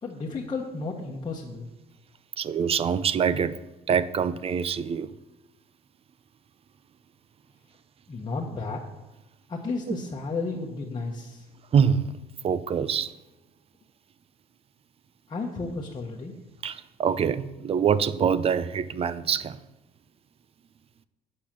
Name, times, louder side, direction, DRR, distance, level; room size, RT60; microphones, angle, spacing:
voice 1, 0.0-1.7 8.1-8.8 9.5-11.5 15.3-16.3, left 3 dB, 25° left, -3 dB, 1.1 m, -33 dB
voice 2, 2.4-3.6 3.9-5.1 11.7-12.1 12.4-13.1 16.6-19.6, right 7 dB, 35° right, 15 dB, 0.5 m, -25 dB
8.7 x 7.1 x 6.0 m, 1.0 s
cardioid pair, 110°, 17 cm